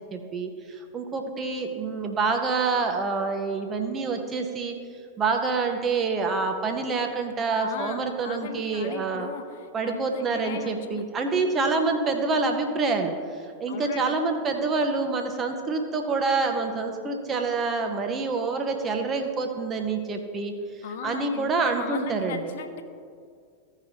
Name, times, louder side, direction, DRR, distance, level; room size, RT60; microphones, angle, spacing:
voice 1, 0.1-4.7 5.2-9.3 9.7-20.5 21.0-22.5, right 4 dB, 25° right, 4 dB, 1.1 m, -27 dB
voice 2, 7.6-11.1 13.7-14.2 20.8-22.8, left 7 dB, 55° left, 7 dB, 0.8 m, -38 dB
16.0 x 5.9 x 3.0 m, 2.2 s
figure-of-eight pair, 90°, 0 cm